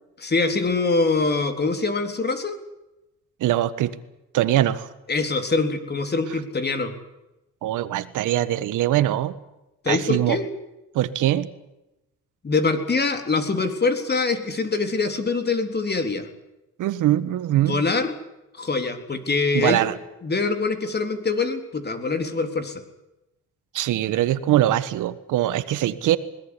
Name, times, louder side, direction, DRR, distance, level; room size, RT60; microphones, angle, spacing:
voice 1, 0.2-2.6 5.1-6.9 9.8-10.5 12.4-16.3 17.5-18.1 18.5-19.8 20.2-22.8, left 3 dB, 35° left, 7 dB, 3.9 m, -24 dB
voice 2, 3.4-3.9 4.3-4.9 7.6-9.3 9.9-10.4 10.9-11.5 16.8-17.8 19.5-19.9 23.7-26.2, right 13 dB, 85° right, 14 dB, 1.5 m, -22 dB
21.5 x 18.5 x 9.9 m, 0.94 s
cardioid pair, 90°, 30 cm